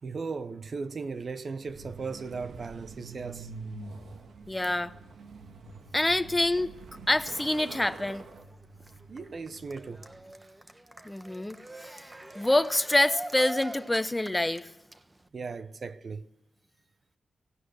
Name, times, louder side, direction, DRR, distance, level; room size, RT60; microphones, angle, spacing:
voice 1, 0.0-3.5 9.1-10.1 15.3-16.3, right 4 dB, 55° right, 0.9 m, -37 dB
Truck, 1.6-10.3, right 3 dB, 85° right, 1.9 m, -46 dB
voice 2, 4.5-4.9 5.9-6.7 7.1-8.2 11.0-11.6 11.8-12.0 12.3-14.7, left 1 dB, 15° left, 1.0 m, -26 dB
Cheering, 8.3-15.3, right 1 dB, 20° right, 1.2 m, -45 dB
18.0 x 18.0 x 8.1 m
cardioid pair, 80°, 0 cm